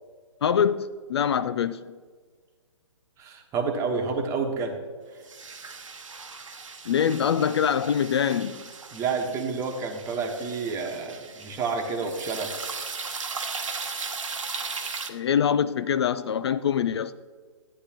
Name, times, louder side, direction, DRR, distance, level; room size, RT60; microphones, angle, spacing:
voice 1, 0.4-2.0 6.9-8.7 15.1-17.1, left 8 dB, 55° left, 0.4 m, -24 dB
voice 2, 3.2-4.8 5.1-5.2 8.9-12.5, right 4 dB, 20° right, 1.2 m, -29 dB
sound 1, 5.3-15.1, right 4 dB, 80° right, 1.2 m, -37 dB
13.5 x 9.7 x 2.9 m
hypercardioid pair, 140°, 17 cm